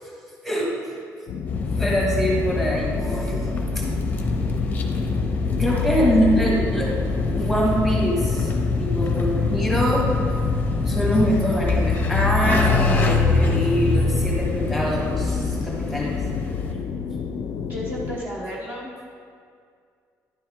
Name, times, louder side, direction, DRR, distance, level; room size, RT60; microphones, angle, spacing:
voice 1, 0.4-0.7 1.8-3.4 3.7-3.8 5.6-6.9 7.3-8.5 8.8-10.1 10.4-10.5 10.8-16.2, equal, ahead, -4 dB, 1.4 m, -24 dB
sound 1, 1.3-18.2, left 6 dB, 65° left, 0.4 m, -31 dB
sound 2, 1.5-16.7, left 3 dB, 25° left, 0.6 m, -24 dB
voice 2, 5.7-6.0 16.7-16.8 17.6-19.1, equal, 30° right, -4 dB, 1.0 m, -34 dB
10.5 x 5.6 x 3.6 m, 2.2 s
cardioid pair, 160°, 6 cm